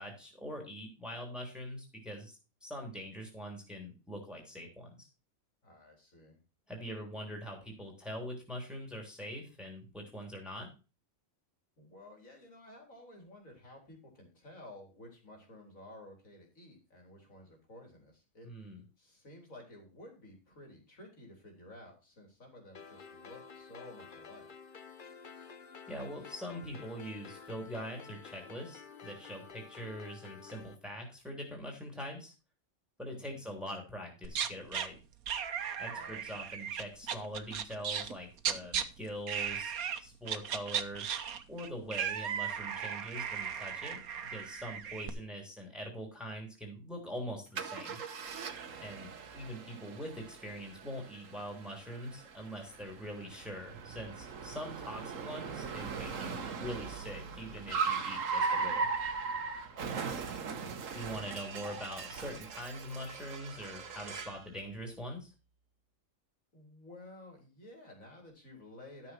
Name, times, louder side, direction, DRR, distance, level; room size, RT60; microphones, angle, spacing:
voice 1, 0.0-5.1 6.7-10.7 18.4-18.8 25.9-32.3 33.0-35.0 35.8-41.1 41.5-44.0 44.3-48.0 48.8-58.9 60.9-65.3, equal, ahead, 1 dB, 3.4 m, -43 dB
voice 2, 5.6-6.4 11.8-18.5 19.0-24.5 33.1-33.5 35.9-36.5 48.6-49.3 59.7-60.6 66.5-69.1, left 1 dB, 70° left, 2 dB, 4.5 m, -53 dB
sound 1, 22.7-30.7, left 5 dB, 40° left, 1.1 m, -51 dB
sound 2, 34.2-34.9 35.3-38.1 38.4-38.8 39.3-40.0 40.3-45.1, right 8 dB, 90° right, 1.5 m, -36 dB
Car, 47.6-64.4, right 5 dB, 65° right, 1.5 m, -39 dB
12.5 x 7.0 x 4.5 m, 0.32 s
omnidirectional pair, 1.5 m